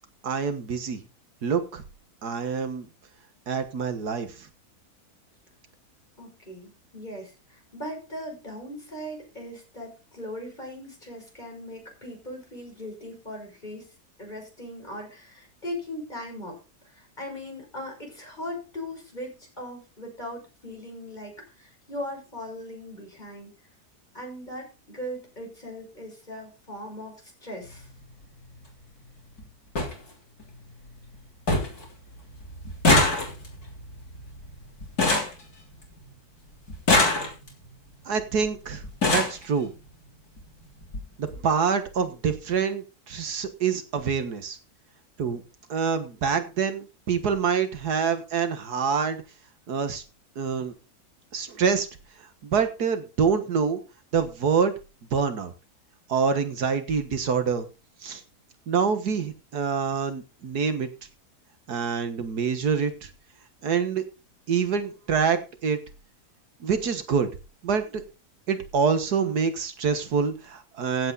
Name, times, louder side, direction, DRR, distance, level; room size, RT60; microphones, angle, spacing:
voice 1, 0.2-1.0 1.4-1.8 2.2-2.9 3.5-4.4 38.1-38.8 39.1-39.7 41.2-44.6 45.2-45.4 45.7-49.2 49.7-50.0 50.4-50.7 51.3-51.9 52.4-53.8 54.1-54.7 55.1-55.5 56.1-57.7 58.0-58.2 58.7-60.9 61.7-63.1 63.6-64.0 64.5-65.8 66.6-67.3 67.6-68.0 68.5-71.1, right 6 dB, 80° right, 9 dB, 2.0 m, -26 dB
voice 2, 6.2-13.9 14.2-23.5 24.1-27.9, left 1 dB, 30° left, 1 dB, 6.3 m, -39 dB
sound 1, 27.6-27.8 29.0-29.1 29.4-29.5 29.7-29.9 30.4-30.9 31.1-31.2 31.5-31.8 32.1-36.1 36.7-37.7 38.5-38.6 38.8-39.4 40.4-40.5 40.8-41.0 41.3-41.4, left 2 dB, 70° left, 4.2 m, -24 dB
15.5 x 8.2 x 4.1 m, 0.30 s
omnidirectional pair, 1.7 m